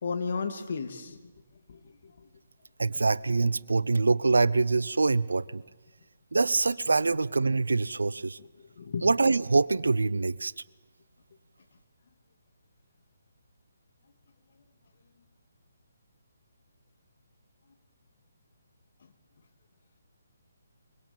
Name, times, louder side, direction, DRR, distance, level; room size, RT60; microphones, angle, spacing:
voice 1, 0.0-1.2 1.7-2.3 8.4-9.1, left 5 dB, 50° left, 5 dB, 2.8 m, -34 dB
voice 2, 2.8-5.6 6.3-8.4 9.0-10.5, right 3 dB, 70° right, 19 dB, 0.7 m, -25 dB
24.5 x 23.0 x 7.4 m, 1.3 s
figure-of-eight pair, 140°, 0 cm